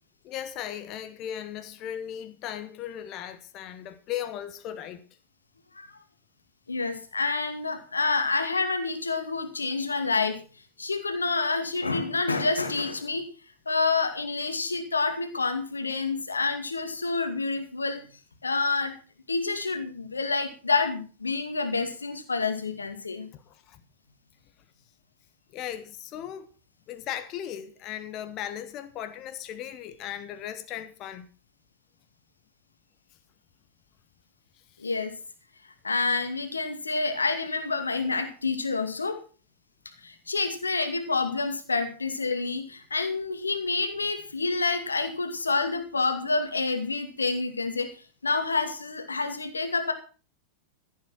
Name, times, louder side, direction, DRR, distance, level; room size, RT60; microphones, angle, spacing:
voice 1, 0.2-5.0 23.3-23.8 25.5-26.5 26.9-31.3 34.8-34.9, left 10 dB, 35° left, 1.5 m, -37 dB
voice 2, 6.7-10.4 10.8-13.3 13.7-18.0 18.4-18.9 19.3-23.3 34.8-35.2 35.8-39.2 40.0-47.9 48.2-49.9, left 3 dB, 75° left, 2.2 m, -28 dB
15.0 x 8.7 x 6.2 m
figure-of-eight pair, 90°, 0 cm